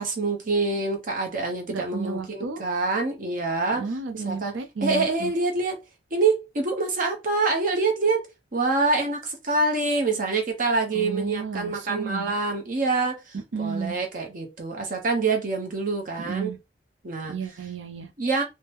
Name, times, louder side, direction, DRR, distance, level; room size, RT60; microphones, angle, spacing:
voice 1, 0.0-3.8 4.2-4.5 4.8-5.8 6.1-8.3 8.5-16.5 17.0-17.3 18.2-18.4, right 3 dB, 45° right, 0.8 m, -26 dB
voice 2, 1.7-2.6 3.7-5.3 10.9-12.3 13.3-13.9 16.2-16.6 17.3-18.1, right 5 dB, 75° right, 0.5 m, -32 dB
3.5 x 2.1 x 2.9 m
head